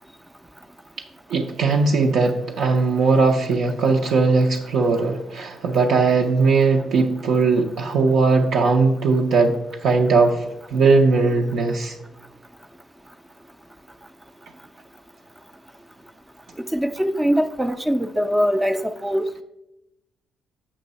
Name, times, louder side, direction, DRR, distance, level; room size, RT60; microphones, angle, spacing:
voice 1, 1.3-10.4 10.7-12.0, right 4 dB, 75° right, 0.6 m, -19 dB
voice 2, 16.7-19.4, equal, 10° right, 0.3 m, -22 dB
7.6 x 5.3 x 4.0 m
cardioid pair, 90°, 0 cm